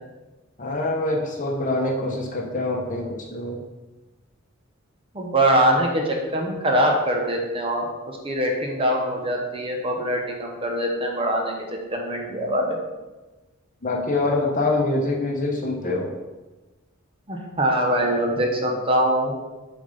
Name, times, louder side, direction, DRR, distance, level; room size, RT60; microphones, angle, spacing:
voice 1, 0.6-3.6 13.8-16.1, left 2 dB, 40° left, 0 dB, 1.0 m, -25 dB
voice 2, 5.1-11.5 11.9-12.8 17.3-19.3, right 1 dB, 25° right, 1 dB, 0.9 m, -23 dB
7.0 x 3.6 x 5.4 m, 1.2 s
head